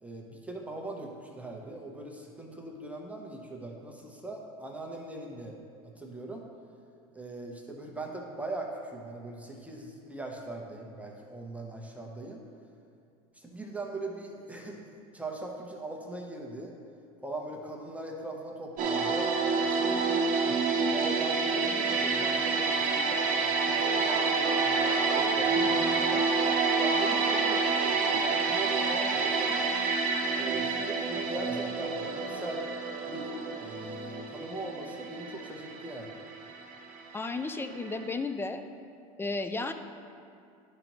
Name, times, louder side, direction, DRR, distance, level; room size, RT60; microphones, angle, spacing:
voice 1, 0.0-5.6 5.8-6.5 7.1-12.4 13.3-14.9 15.1-16.8 17.2-19.3 19.6-26.3 26.8-29.7 30.3-32.6 33.1-33.3 33.6-36.2, right 2 dB, 10° right, 0 dB, 0.8 m, -40 dB
sound 1, 18.8-37.6 37.9-38.1, right 4 dB, 50° right, 1.0 m, -28 dB
voice 2, 37.1-38.6 39.2-39.7, left 3 dB, 15° left, 8 dB, 0.4 m, -33 dB
11.0 x 5.1 x 3.0 m, 2.4 s
supercardioid pair, 95°, 18 cm